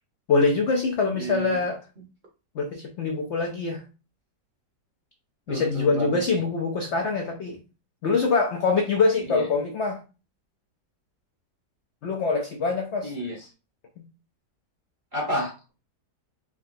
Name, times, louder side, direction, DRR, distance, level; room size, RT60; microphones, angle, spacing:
voice 1, 0.3-1.8 2.5-3.8 5.5-7.6 8.0-10.0 12.0-13.1 14.0-14.1, left 4 dB, 80° left, 3 dB, 0.6 m, -24 dB
voice 2, 1.1-1.6 5.5-6.4 9.2-9.4 13.0-13.3 15.1-15.7, right 1 dB, 40° right, -1 dB, 0.8 m, -31 dB
3.8 x 3.3 x 2.6 m, 0.32 s
omnidirectional pair, 1.9 m